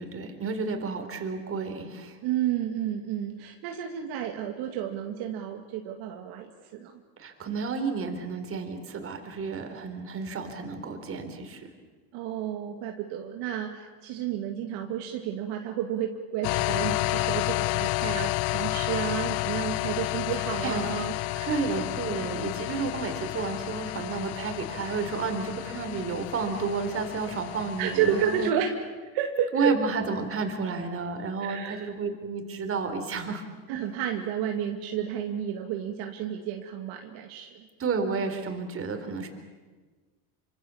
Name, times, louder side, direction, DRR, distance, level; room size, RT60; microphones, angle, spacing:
voice 1, 0.0-2.2 7.2-11.7 20.6-20.9 21.4-28.5 29.5-33.4 33.7-33.8 37.8-39.3, right 4 dB, 30° right, 6 dB, 4.5 m, -31 dB
voice 2, 2.2-7.0 12.1-21.6 27.8-28.7 29.1-29.7 31.4-31.9 33.7-37.7, right 9 dB, 60° right, 3 dB, 2.4 m, -31 dB
sound 1, 16.4-28.5, left 20 dB, 60° left, 0.8 m, -31 dB
27.5 x 26.0 x 7.3 m, 1.3 s
supercardioid pair, 110°, 43 cm